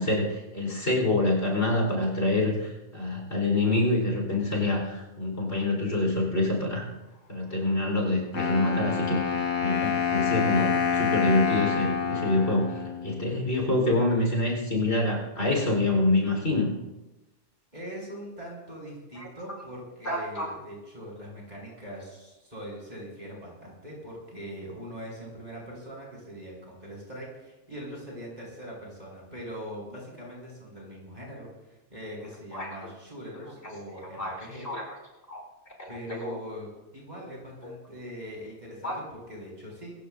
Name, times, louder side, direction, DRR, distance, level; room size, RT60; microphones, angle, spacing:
voice 1, 0.0-6.8 7.3-9.2 9.6-12.7 13.0-16.7 19.2-19.3 20.0-20.5 32.5-32.7 34.2-34.4 34.6-34.9 35.3-35.4 35.8-35.9 36.2-36.4 37.6-37.7 38.8-39.0, left 2 dB, 55° left, 0 dB, 4.4 m, -26 dB
Wind instrument woodwind instrument, 8.3-13.3, left 7 dB, 80° left, 1.8 m, -27 dB
voice 2, 17.7-34.7 35.9-39.9, equal, 35° right, -3 dB, 6.1 m, -42 dB
25.0 x 15.5 x 2.6 m, 1.0 s
omnidirectional pair, 1.3 m